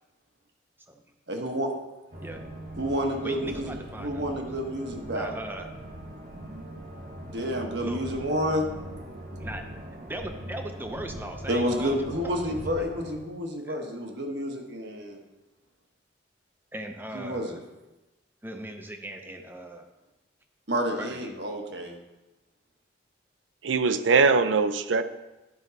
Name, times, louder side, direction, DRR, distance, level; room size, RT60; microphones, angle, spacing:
voice 1, 1.3-1.7 2.8-5.4 7.2-8.7 11.5-15.2 17.1-17.6 20.7-22.0, equal, 60° right, 2 dB, 1.2 m, -30 dB
sound 1, 2.1-13.2, equal, 45° right, 1.0 m, -41 dB
voice 2, 3.2-4.2 5.1-5.7 7.8-8.0 9.4-9.6 10.0-12.3 12.8-12.9 13.6-13.8 16.7-17.6 18.4-19.9 21.0-21.3, right 1 dB, 10° right, 5 dB, 0.6 m, -38 dB
voice 3, 23.6-25.0, right 4 dB, 80° right, 12 dB, 0.5 m, -21 dB
11.0 x 5.3 x 4.0 m, 1.1 s
head